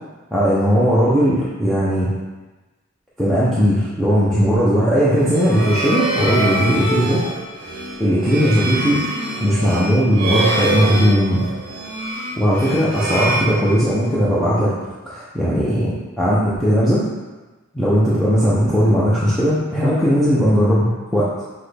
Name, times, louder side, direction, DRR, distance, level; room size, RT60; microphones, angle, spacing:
voice 1, 0.3-2.1 3.2-7.2 8.0-9.0 9.4-11.4 12.4-14.7 15.1-17.0 17.7-21.3, equal, ahead, -10 dB, 0.6 m, -17 dB
sound 1, 5.1-14.2, right 1 dB, 50° right, 0.7 m, -25 dB
6.0 x 2.3 x 3.3 m, 1.2 s
head